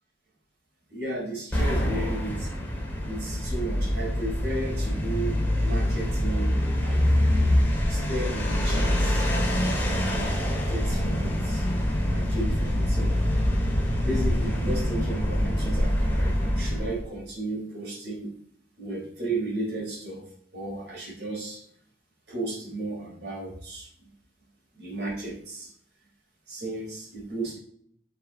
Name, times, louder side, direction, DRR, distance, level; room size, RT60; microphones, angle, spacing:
voice 1, 0.9-2.5 3.1-7.0 7.9-9.2 10.0-11.7 12.0-13.2 14.0-18.3 18.8-21.6 22.3-24.1 24.7-25.7 26.5-27.6, right 2 dB, 60° right, -3 dB, 3.9 m, -34 dB
sound 1, 1.5-17.0, equal, 10° left, 2.3 m, -25 dB
9.8 x 6.0 x 3.4 m, 0.63 s
head